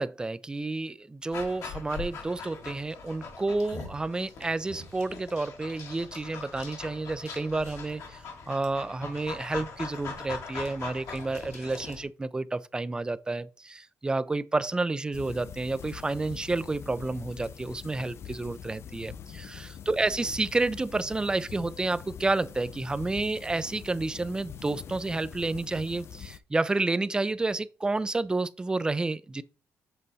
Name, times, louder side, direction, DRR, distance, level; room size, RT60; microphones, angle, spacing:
voice 1, 0.0-29.4, right 3 dB, 15° right, 0.4 m, -30 dB
Dog, 1.3-12.0, left 5 dB, 65° left, 1.8 m, -41 dB
sound 1, 15.1-26.4, left 8 dB, 50° left, 0.4 m, -44 dB
7.5 x 3.9 x 4.1 m
cardioid pair, 115°, 5 cm